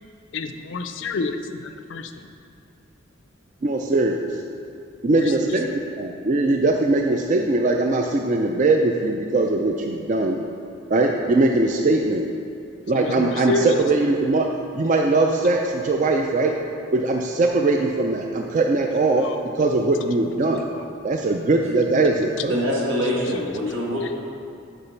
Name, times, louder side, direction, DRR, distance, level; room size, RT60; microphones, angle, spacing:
voice 1, 0.3-2.3 5.1-5.6 12.9-13.8 19.2-19.4 20.4-20.8 23.1-24.1, left 3 dB, 70° left, 8 dB, 0.5 m, -29 dB
voice 2, 3.6-4.2 5.0-5.7 6.0-10.4 10.9-12.2 12.9-14.5 14.7-16.5 16.9-19.2 19.6-20.6 21.0-22.5, right 2 dB, 40° right, 2 dB, 0.4 m, -20 dB
voice 3, 22.5-24.2, equal, 80° right, -4 dB, 1.7 m, -24 dB
6.9 x 5.1 x 5.6 m, 2.5 s
head